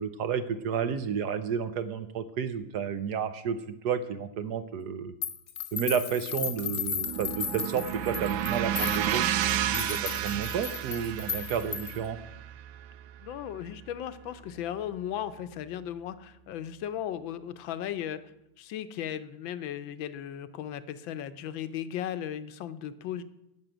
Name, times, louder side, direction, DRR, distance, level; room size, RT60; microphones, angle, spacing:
voice 1, 0.0-5.1 5.7-9.2 9.6-12.2, right 7 dB, 65° right, 11 dB, 1.1 m, -31 dB
sound 1, 5.2-12.1, left 7 dB, 45° left, 1.0 m, -35 dB
sound 2, 6.6-14.7, right 11 dB, 80° right, 1.4 m, -32 dB
voice 2, 13.2-18.2 18.6-23.2, left 10 dB, 80° left, 13 dB, 1.5 m, -36 dB
11.0 x 6.4 x 8.9 m, 0.83 s
omnidirectional pair, 2.1 m